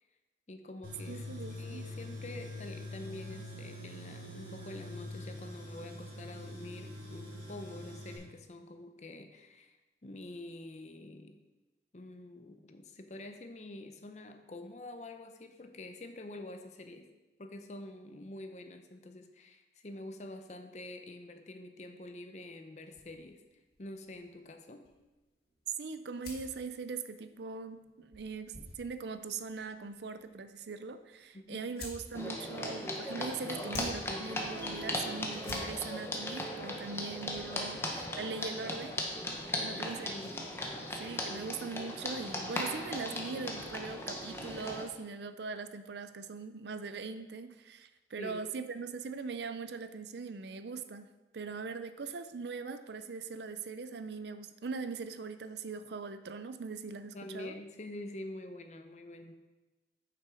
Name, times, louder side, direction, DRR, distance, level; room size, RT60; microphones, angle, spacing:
voice 1, 0.5-1.3 1.6-9.8 10.0-11.4 11.9-17.1 17.4-23.4 23.8-24.8 31.3-31.7 37.6-38.0 39.5-40.4 41.3-41.5 48.2-48.4 57.1-59.3, left 1 dB, 40° left, 6 dB, 0.6 m, -47 dB
Tools, 0.8-8.2, left 1 dB, 50° right, 2.1 m, -44 dB
voice 2, 1.1-1.9 25.8-39.0 39.6-40.1 41.0-57.5, right 4 dB, 70° right, 10 dB, 0.5 m, -41 dB
sound 1, 22.9-39.8, left 1 dB, 60° left, 1.9 m, -53 dB
sound 2, 32.1-44.8, left 1 dB, 15° left, 0.9 m, -38 dB
6.9 x 5.9 x 4.8 m, 1.1 s
head